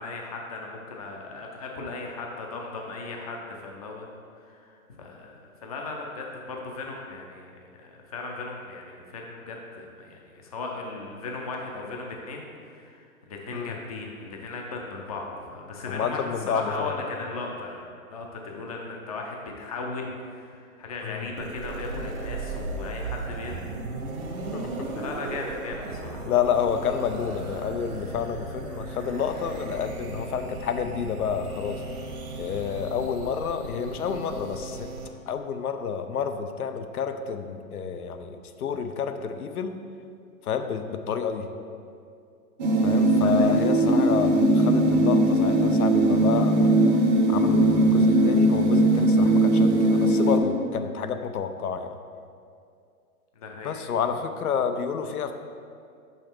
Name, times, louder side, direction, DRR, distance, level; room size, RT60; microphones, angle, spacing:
voice 1, 0.0-4.1 4.4-7.5 7.8-17.8 18.1-23.6 24.9-26.3 43.2-43.5 53.4-53.8, left 3 dB, 25° left, 0 dB, 0.5 m, -37 dB
voice 2, 15.9-16.9 21.0-21.3 24.5-24.9 26.2-31.8 32.4-34.9 35.3-39.8 40.4-41.5 42.8-46.7 47.3-51.9 53.6-55.3, left 7 dB, 85° left, 8 dB, 0.7 m, -29 dB
sound 1, 21.4-35.1, right 2 dB, 80° right, 1.3 m, -36 dB
sound 2, 42.6-50.4, right 1 dB, 30° right, 0.6 m, -20 dB
6.0 x 5.6 x 4.4 m, 2.3 s
hypercardioid pair, 160°, 43 cm